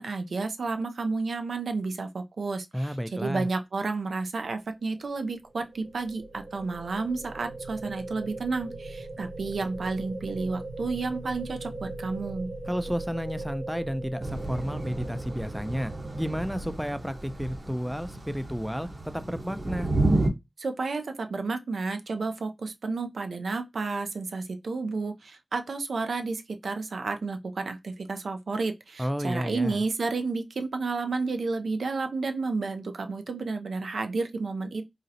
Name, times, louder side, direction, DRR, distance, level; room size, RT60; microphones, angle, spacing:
voice 1, 0.0-12.5 20.6-34.9, right 3 dB, 90° right, 0.4 m, -31 dB
voice 2, 2.7-3.5 12.7-18.9 19.1-19.9 29.0-29.8, equal, 5° right, 0.3 m, -32 dB
sound 1, 5.3-17.5, right 2 dB, 65° right, 1.2 m, -40 dB
Thunder / Rain, 14.2-20.3, right 2 dB, 50° right, 0.8 m, -31 dB
3.9 x 2.0 x 2.6 m
cardioid pair, 45°, 0 cm